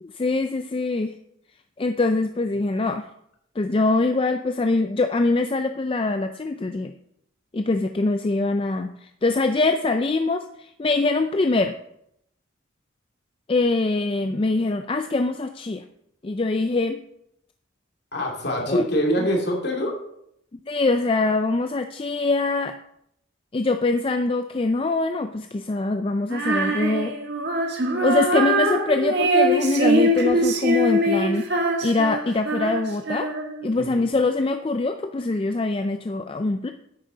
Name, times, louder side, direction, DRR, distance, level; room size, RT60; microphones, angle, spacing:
voice 1, 0.0-1.1 1.8-3.1 3.6-6.9 7.5-11.7 13.5-15.8 16.2-17.0 18.7-18.8 19.2-19.3 20.7-22.7 23.5-27.1 28.0-33.3 33.6-36.7, left 3 dB, 25° left, 7 dB, 0.4 m, -23 dB
voice 2, 18.1-19.9 33.7-33.9, equal, 55° left, 0 dB, 2.5 m, -24 dB
Female singing, 26.3-33.7, right 1 dB, 55° right, 1.7 m, -23 dB
10.5 x 8.7 x 3.9 m, 0.75 s
head